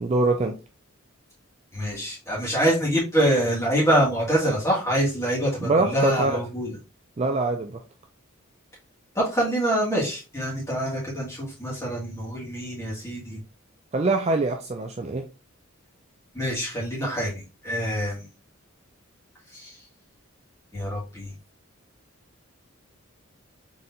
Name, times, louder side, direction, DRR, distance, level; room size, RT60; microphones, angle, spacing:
voice 1, 0.0-0.5 5.6-6.4 7.2-7.8 13.9-15.2, right 3 dB, 30° right, 5 dB, 0.3 m, -24 dB
voice 2, 1.7-6.8 9.2-13.4 16.3-18.3 19.5-19.8 20.7-21.3, right 1 dB, 15° left, -6 dB, 1.9 m, -25 dB
4.0 x 3.7 x 2.7 m, 0.31 s
head